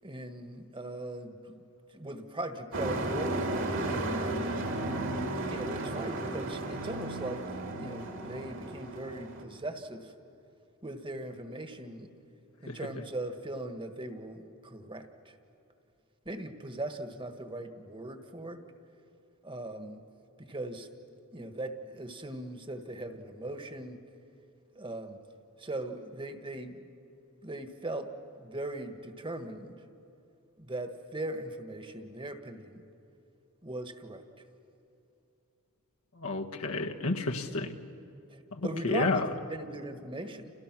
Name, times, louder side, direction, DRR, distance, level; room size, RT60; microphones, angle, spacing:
voice 1, 0.0-1.6 1.9-4.6 5.5-7.4 7.8-10.1 10.8-12.1 12.6-15.3 16.2-18.6 19.4-20.0 20.4-20.9 21.3-24.0 24.7-25.2 25.6-26.9 27.4-28.1 28.4-29.8 30.6-32.8 33.6-34.2 38.3-40.5, right 1 dB, 25° right, 7 dB, 1.6 m, -39 dB
Truck, 2.7-9.4, right 2 dB, 60° right, 2.5 m, -34 dB
voice 2, 36.2-37.8 38.5-39.3, left 3 dB, 75° left, 3 dB, 1.5 m, -31 dB
30.0 x 29.0 x 6.2 m, 2.8 s
head